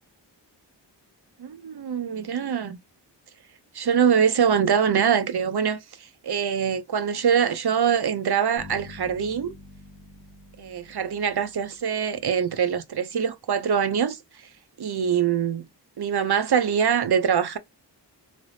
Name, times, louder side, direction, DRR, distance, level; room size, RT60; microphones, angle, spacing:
voice 1, 1.4-2.8 3.7-9.5 10.6-14.5 14.8-15.6 16.0-17.6, right 7 dB, 60° right, 0.6 m, -24 dB
sound 1, 8.6-12.3, left 2 dB, 85° left, 1.4 m, -47 dB
3.3 x 2.9 x 2.6 m
wide cardioid pair, 75°, 44 cm